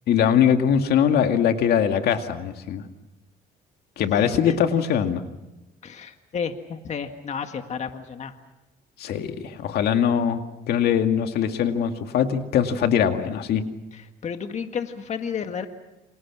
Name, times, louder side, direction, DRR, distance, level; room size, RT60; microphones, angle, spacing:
voice 1, 0.1-2.8 4.0-5.2 9.0-13.6, left 8 dB, 70° left, 6 dB, 2.1 m, -22 dB
voice 2, 4.1-4.6 5.8-8.3 13.9-15.7, left 6 dB, 45° left, 6 dB, 1.8 m, -32 dB
29.5 x 27.0 x 6.2 m, 1.0 s
cardioid pair, 110°, 17 cm